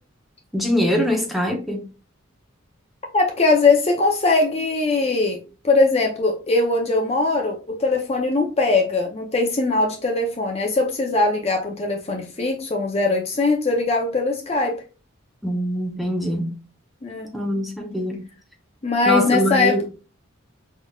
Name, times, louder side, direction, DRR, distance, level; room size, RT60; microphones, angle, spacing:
voice 1, 0.5-1.8 15.4-16.6 17.3-18.2 19.0-19.8, equal, ahead, 0.8 m, -23 dB
voice 2, 3.1-5.4 5.6-14.8 17.0-17.3 18.8-19.9, left 3 dB, 30° left, 0.6 m, -21 dB
5.0 x 3.6 x 2.3 m
head